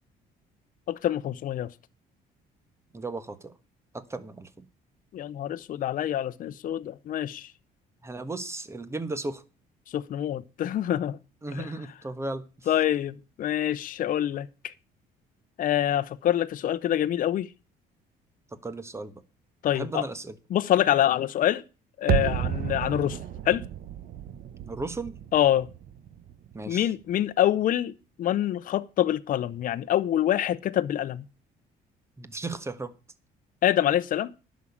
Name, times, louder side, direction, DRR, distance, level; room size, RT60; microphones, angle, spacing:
voice 1, 0.9-1.7 5.1-7.5 9.9-11.2 11.5-11.7 12.7-14.5 15.6-17.5 19.6-20.1 20.5-21.6 22.0-23.2 23.4-23.6 25.3-25.7 26.7-27.9 28.2-31.2 33.6-34.3, left 11 dB, 55° left, 0.8 m, -25 dB
voice 2, 2.9-3.5 3.9-4.6 8.0-9.4 11.4-12.7 18.6-19.2 19.7-20.3 24.6-25.2 26.5-26.9 32.2-32.9, right 2 dB, 15° right, 1.3 m, -35 dB
sound 1, 22.1-27.0 27.3-27.4, right 11 dB, 60° right, 0.9 m, -32 dB
11.0 x 6.4 x 8.6 m
cardioid pair, 110°, 17 cm